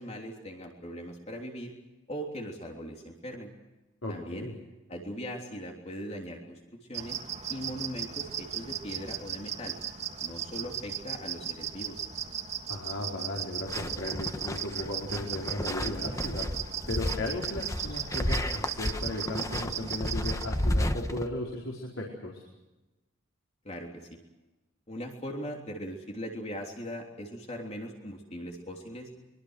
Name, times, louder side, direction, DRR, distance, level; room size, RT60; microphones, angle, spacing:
voice 1, 0.0-1.7 2.1-3.5 4.1-4.5 4.9-6.6 6.9-7.2 7.5-9.7 10.2-12.0 23.6-24.2 24.9-29.1, equal, 30° left, 1 dB, 3.3 m, -40 dB
voice 2, 4.0-4.5 12.7-16.5 16.9-22.4, left 1 dB, 80° left, -1 dB, 4.8 m, -36 dB
sound 1, 6.9-20.5, right 9 dB, 35° right, 2.6 m, -37 dB
sound 2, 13.7-21.3, left 1 dB, 15° left, 1.3 m, -32 dB
24.5 x 23.5 x 6.5 m, 1.1 s
head